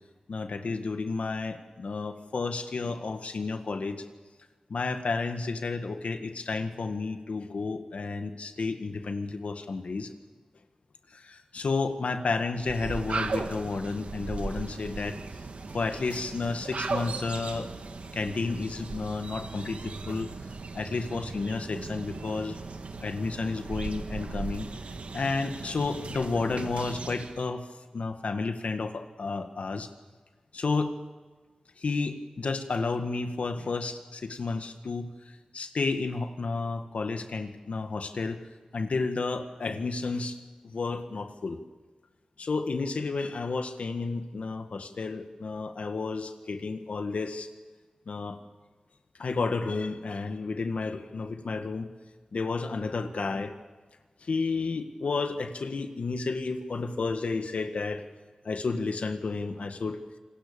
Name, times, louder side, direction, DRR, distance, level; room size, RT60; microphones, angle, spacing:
voice 1, 0.3-4.0 4.7-10.1 11.1-15.2 15.7-17.7 18.1-20.3 20.7-22.6 23.0-24.7 25.1-27.7 27.9-29.9 30.5-31.0 31.8-35.1 35.5-38.4 38.7-40.4 40.6-41.6 42.4-47.5 48.1-48.4 49.2-51.9 52.3-53.5 54.2-58.1 58.4-60.0, left 4 dB, 85° left, 7 dB, 1.8 m, -31 dB
sound 1, 12.5-27.4, right 4 dB, 90° right, 1.6 m, -37 dB
28.0 x 19.5 x 6.9 m, 1.4 s
wide cardioid pair, 75°, 2 cm